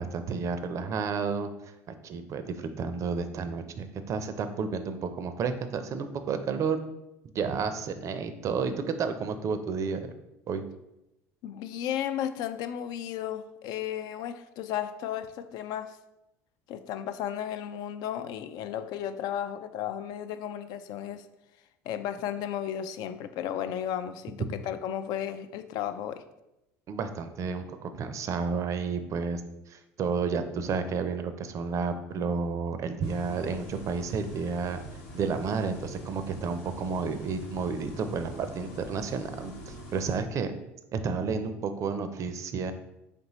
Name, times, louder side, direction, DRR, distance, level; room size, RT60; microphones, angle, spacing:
voice 1, 0.0-1.5 2.0-6.8 7.3-8.7 9.0-10.1 10.5-10.6 26.9-29.4 29.7-34.8 35.1-40.5 40.9-42.7, right 5 dB, 45° right, 9 dB, 0.5 m, -31 dB
voice 2, 11.4-16.0 16.7-21.3 21.9-26.2, left 10 dB, 60° left, 10 dB, 0.3 m, -34 dB
sound 1, 33.0-40.2, equal, 80° left, 1.0 m, -44 dB
4.1 x 3.2 x 3.0 m, 0.91 s
hypercardioid pair, 85°, 8 cm